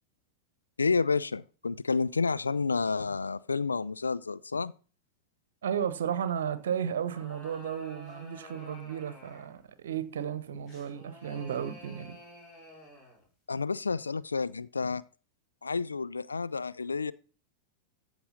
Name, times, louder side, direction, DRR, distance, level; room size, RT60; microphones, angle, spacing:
voice 1, 0.8-4.7 13.5-15.0 15.6-17.1, left 4 dB, 75° left, 0.3 m, -30 dB
voice 2, 5.6-12.2, right 8 dB, 60° right, 1.0 m, -34 dB
sound 1, 6.8-9.7 10.7-13.3, equal, 30° left, 6.0 m, -50 dB
14.0 x 6.3 x 4.0 m
figure-of-eight pair, 90°, 0 cm